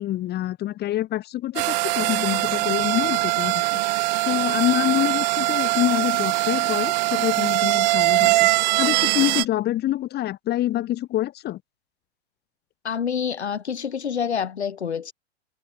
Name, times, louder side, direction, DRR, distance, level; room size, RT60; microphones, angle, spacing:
voice 1, 0.0-3.8 4.2-8.5 8.8-11.6, left 14 dB, 30° left, 4.8 m, -26 dB
sound 1, 1.6-9.5, right 21 dB, 40° right, 0.6 m, -22 dB
voice 2, 12.8-15.1, left 7 dB, 75° left, 1.7 m, -27 dB
figure-of-eight pair, 105°, 33 cm